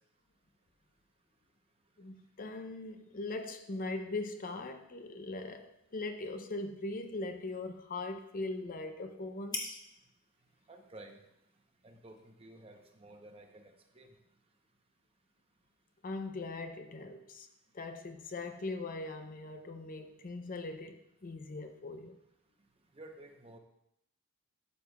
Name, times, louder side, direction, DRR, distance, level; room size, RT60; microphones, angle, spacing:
voice 1, 2.0-9.8 16.0-17.5 17.7-22.2, left 2 dB, 40° left, 0.5 m, -40 dB
sound 1, 5.2-12.9, left 2 dB, 20° left, 1.0 m, -50 dB
voice 2, 10.7-11.2 11.8-14.1 22.9-23.6, right 1 dB, 25° right, 0.8 m, -53 dB
12.5 x 7.0 x 2.3 m
head